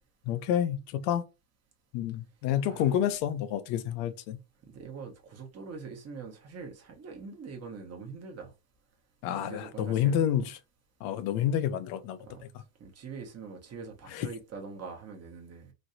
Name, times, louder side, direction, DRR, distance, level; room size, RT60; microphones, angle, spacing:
voice 1, 0.3-1.2 1.9-4.4 9.2-10.6 11.0-12.5 14.1-14.3, left 10 dB, 65° left, 0.6 m, -29 dB
voice 2, 4.7-8.5 9.3-10.2 12.2-12.5 12.8-15.7, right 5 dB, 35° right, 1.0 m, -43 dB
3.1 x 2.7 x 2.6 m
supercardioid pair, 110°, 47 cm